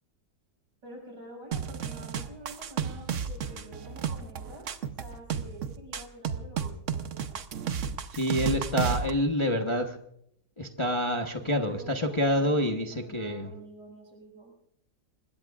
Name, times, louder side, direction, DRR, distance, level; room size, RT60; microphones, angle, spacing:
voice 1, 0.8-4.7 5.0-7.4 11.4-14.5, right 2 dB, 70° right, 0 dB, 7.1 m, -48 dB
sound 1, 1.5-9.1, right 7 dB, 50° right, 1.0 m, -32 dB
voice 2, 8.1-9.9 10.6-13.5, equal, 20° left, 3 dB, 1.0 m, -27 dB
25.0 x 21.0 x 2.4 m, 0.72 s
omnidirectional pair, 1.9 m